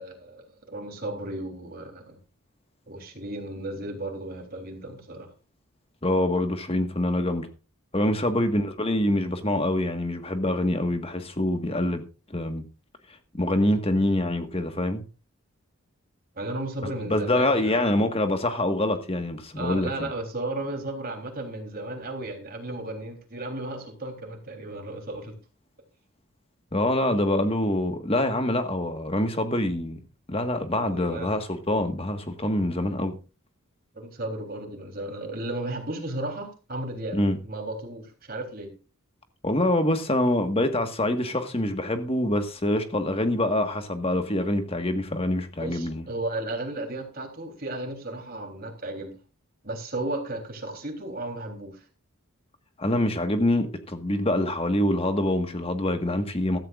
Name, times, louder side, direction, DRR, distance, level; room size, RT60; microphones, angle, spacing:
voice 1, 0.0-2.2 2.9-5.3 16.4-17.8 19.6-25.4 30.7-31.3 33.9-37.2 37.4-38.7 45.6-49.2 49.6-51.8, right 2 dB, 40° right, 3.5 m, -34 dB
voice 2, 6.0-7.5 7.9-12.0 12.3-12.6 13.3-15.0 16.8-20.1 26.7-30.0 30.3-33.2 37.1-37.4 39.4-46.0 52.8-56.6, left 1 dB, 25° left, 1.6 m, -25 dB
15.5 x 13.5 x 2.5 m
head